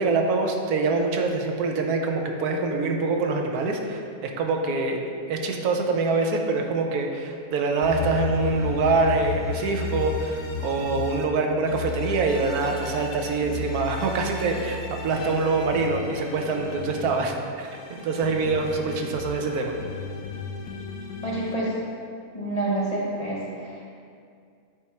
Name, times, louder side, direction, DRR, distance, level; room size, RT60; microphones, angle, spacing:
voice 1, 0.0-19.8, right 3 dB, 85° right, 3 dB, 1.2 m, -25 dB
sound 1, 7.8-11.2 11.7-17.2 17.7-21.5, left 4 dB, 90° left, 1.2 m, -34 dB
voice 2, 21.2-21.8 22.3-23.9, right 2 dB, 30° left, -6 dB, 0.8 m, -28 dB
8.2 x 3.1 x 4.4 m, 2.3 s
omnidirectional pair, 1.6 m